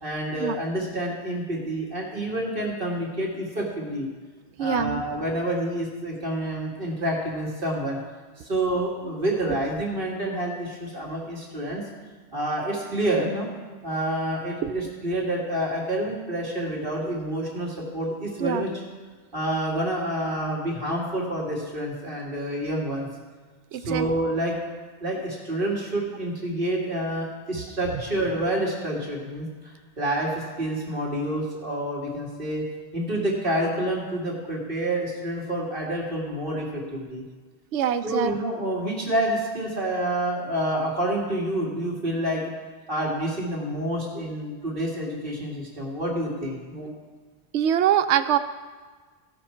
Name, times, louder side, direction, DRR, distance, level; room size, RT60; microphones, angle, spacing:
voice 1, 0.0-4.1 4.6-8.0 8.4-11.8 12.3-13.5 13.8-18.8 19.3-23.1 23.8-24.5 25.0-32.7 32.9-37.2 38.0-42.4 42.9-46.9, right 1 dB, 50° right, -3 dB, 2.3 m, -28 dB
voice 2, 4.6-5.0 14.6-14.7 18.4-18.6 23.7-24.0 37.7-38.3 47.5-48.4, right 10 dB, 90° right, 11 dB, 0.9 m, -23 dB
16.0 x 6.1 x 4.4 m, 1.4 s
omnidirectional pair, 1.1 m